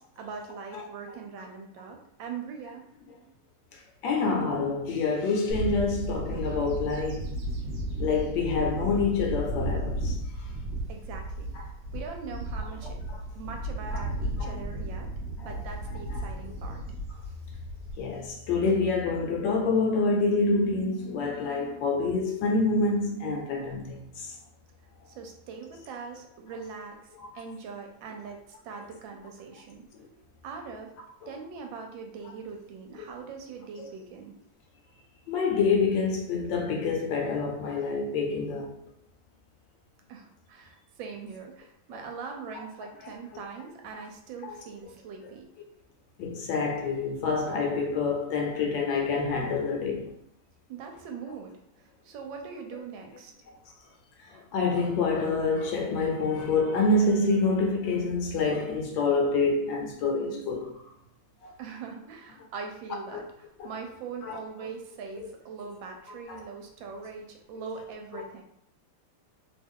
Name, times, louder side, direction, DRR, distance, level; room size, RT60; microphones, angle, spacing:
voice 1, 0.0-2.8 10.9-13.0 13.3-15.1 15.4-16.8 25.1-27.0 27.3-29.8 30.4-30.9 31.3-34.3 40.1-45.5 50.7-51.5 52.0-53.3 61.6-68.4, right 5 dB, 75° right, 1.3 m, -41 dB
voice 2, 3.7-7.3 8.0-10.5 11.5-11.6 13.1-13.2 13.9-14.0 14.4-14.5 15.4-15.5 16.2-16.3 18.0-24.4 33.8-33.9 35.3-38.8 43.0-43.1 44.5-44.6 46.2-50.1 54.3-60.8 61.4-61.5 63.1-63.2 64.2-64.4 65.2-65.3 66.3-66.4 68.1-68.2, left 3 dB, 75° left, 1.2 m, -27 dB
Bird / Wind, 5.5-18.3, right 1 dB, 45° right, 1.0 m, -34 dB
3.1 x 2.3 x 3.5 m
omnidirectional pair, 2.1 m